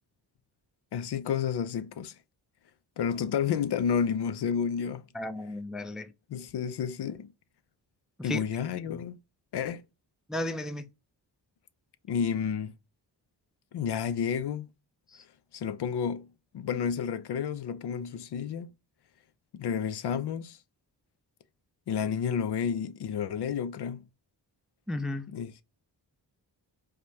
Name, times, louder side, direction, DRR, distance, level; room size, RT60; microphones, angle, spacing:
voice 1, 0.9-2.1 3.0-5.0 6.3-7.3 8.2-9.2 9.5-9.8 12.1-12.7 13.7-14.7 15.5-16.3 16.5-18.7 19.5-20.6 21.9-24.0 25.3-25.6, left 7 dB, 65° left, 0.5 m, -30 dB
voice 2, 5.1-6.1 8.2-8.4 10.3-10.8 15.1-15.2 24.9-25.3, left 1 dB, ahead, 0.4 m, -34 dB
4.9 x 2.2 x 2.8 m
cardioid pair, 65°, 43 cm